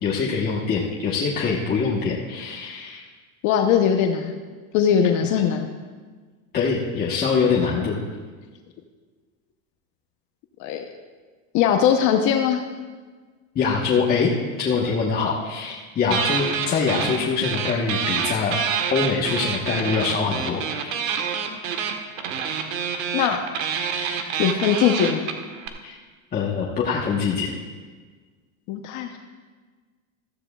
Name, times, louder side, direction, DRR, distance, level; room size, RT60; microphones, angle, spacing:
voice 1, 0.0-3.0 6.5-8.0 13.5-14.3 14.6-18.6 18.9-21.1 25.8-25.9 26.3-27.5, left 5 dB, 25° left, -4 dB, 1.2 m, -24 dB
voice 2, 3.4-4.3 4.7-5.7 10.6-10.8 11.5-12.6 21.2-21.3 23.1-23.4 24.4-25.3 28.7-29.2, left 8 dB, 45° left, 4 dB, 0.8 m, -20 dB
sound 1, 16.1-17.2 17.4-25.7, right 7 dB, 80° right, 1.4 m, -27 dB
15.0 x 13.5 x 2.4 m, 1.4 s
supercardioid pair, 135°, 39 cm